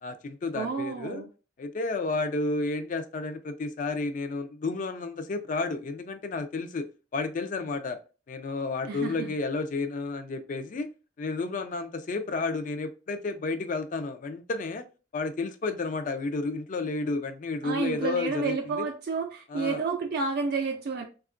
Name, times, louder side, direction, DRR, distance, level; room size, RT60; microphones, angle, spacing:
voice 1, 0.0-1.2 1.6-6.9 7.1-8.0 8.3-10.9 11.2-14.8 15.1-18.8 19.5-19.8, left 3 dB, 40° left, 0.4 m, -31 dB
voice 2, 0.5-1.3 8.9-9.3 17.6-21.0, right 4 dB, 55° right, 0.4 m, -30 dB
3.5 x 2.3 x 2.4 m
head